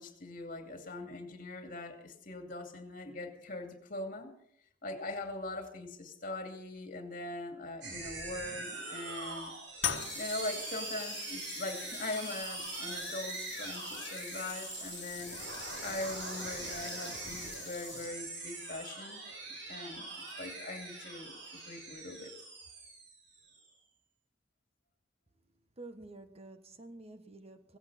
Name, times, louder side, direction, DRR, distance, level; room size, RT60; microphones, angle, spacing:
voice 1, 0.0-4.4 4.8-9.5 10.1-19.2 19.7-22.3, left 2 dB, 50° left, 4 dB, 2.6 m, -42 dB
sound 1, 7.8-23.6, right 3 dB, 80° right, 5.8 m, -43 dB
sound 2, 9.8-18.4, left 9 dB, 70° left, 1.4 m, -43 dB
voice 2, 25.8-27.8, right 2 dB, 35° right, 8 dB, 1.2 m, -49 dB
17.0 x 16.0 x 4.2 m, 0.70 s
head